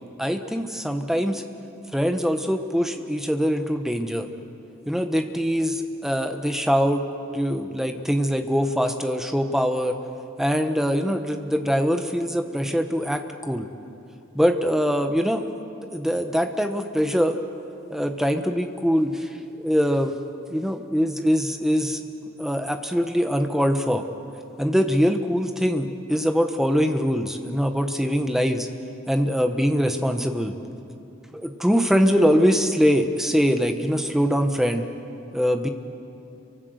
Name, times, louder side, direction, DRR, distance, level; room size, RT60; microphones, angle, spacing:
voice 1, 0.2-1.4 1.9-4.3 4.9-7.1 7.3-10.0 10.4-13.7 14.3-15.5 15.9-17.4 17.9-19.3 19.6-20.1 20.5-22.0 22.4-24.0 24.6-28.7 29.1-30.5 31.3-34.8 35.3-35.7, equal, ahead, 6 dB, 1.2 m, -23 dB
30.0 x 24.0 x 6.6 m, 2.8 s
head